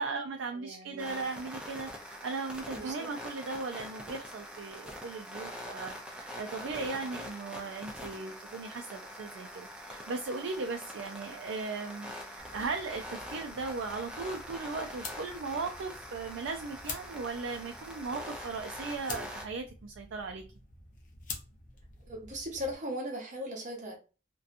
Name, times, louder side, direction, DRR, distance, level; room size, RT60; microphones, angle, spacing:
voice 1, 0.0-20.4, right 4 dB, 70° right, 0.3 m, -37 dB
voice 2, 0.5-1.3 2.7-3.1 22.1-24.0, equal, 40° right, 0.7 m, -39 dB
sound 1, 1.0-19.5, equal, 5° right, 0.4 m, -44 dB
sound 2, 12.4-22.7, left 4 dB, 40° left, 0.6 m, -48 dB
2.7 x 2.2 x 2.4 m
head